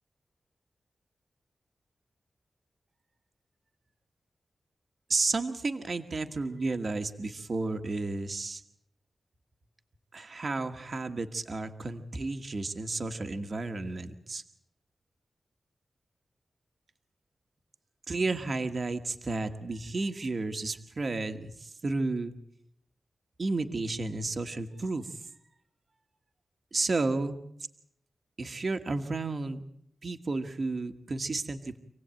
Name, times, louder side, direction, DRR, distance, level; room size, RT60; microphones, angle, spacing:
voice 1, 5.1-8.6 10.1-14.4 18.1-22.3 23.4-25.3 26.7-27.4 28.4-29.6 30.0-31.8, right 3 dB, 40° right, 6 dB, 1.5 m, -32 dB
27.5 x 18.0 x 9.0 m, 0.74 s
wide cardioid pair, 170°, 0 cm